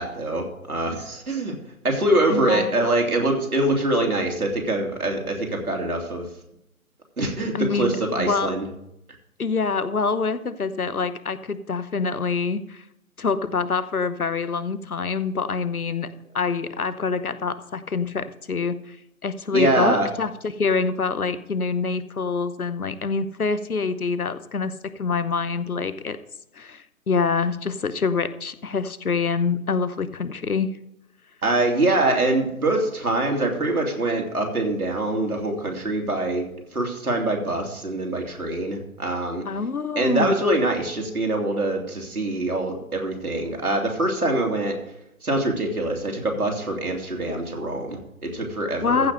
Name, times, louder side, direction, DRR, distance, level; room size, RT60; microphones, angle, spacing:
voice 1, 0.0-1.5 1.8-6.3 7.2-8.7 19.5-20.1 31.4-39.4 39.9-44.7 45.2-49.1, right 2 dB, 75° right, 1 dB, 2.9 m, -24 dB
voice 2, 2.3-2.8 7.5-8.5 9.4-12.8 13.2-16.1 16.3-19.0 19.2-26.2 26.5-30.8 39.5-40.4 48.8-49.1, left 4 dB, 75° left, 14 dB, 1.0 m, -26 dB
14.5 x 5.4 x 6.3 m, 0.83 s
figure-of-eight pair, 135°, 44 cm